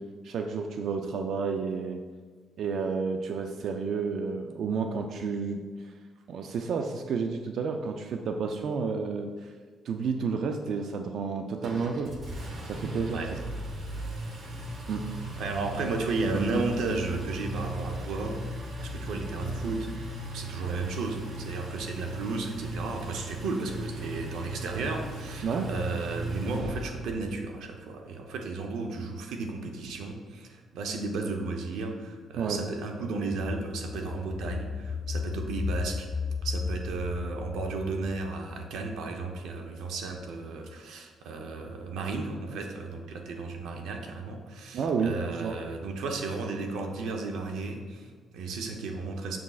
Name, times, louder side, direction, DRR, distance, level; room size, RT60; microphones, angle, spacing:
voice 1, 0.2-2.0 2.6-5.6 6.3-9.3 9.9-12.2 12.7-13.4 14.9-15.1 25.4-25.7 32.4-32.6 44.7-45.6, right 5 dB, 65° right, 5 dB, 0.4 m, -31 dB
Engine, 11.6-27.3, right 1 dB, 45° right, 1.0 m, -38 dB
voice 2, 15.4-18.4 18.8-20.1 20.3-36.1 36.4-49.4, right 3 dB, 85° right, 3 dB, 0.7 m, -34 dB
sound 1, 33.3-38.9 39.3-39.4, left 5 dB, 35° left, 0.3 m, -35 dB
6.9 x 6.1 x 2.4 m, 1.5 s
cardioid pair, 120°, 0 cm